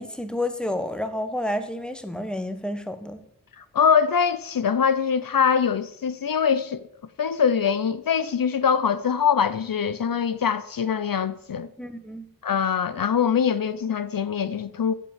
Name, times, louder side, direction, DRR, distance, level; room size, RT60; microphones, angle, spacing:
voice 1, 0.0-3.2 11.8-12.3, left 1 dB, ahead, 1.3 m, -30 dB
voice 2, 3.6-6.8 7.2-11.7 12.4-14.9, left 7 dB, 70° left, 0.7 m, -23 dB
10.0 x 7.4 x 7.3 m
wide cardioid pair, 80°, 36 cm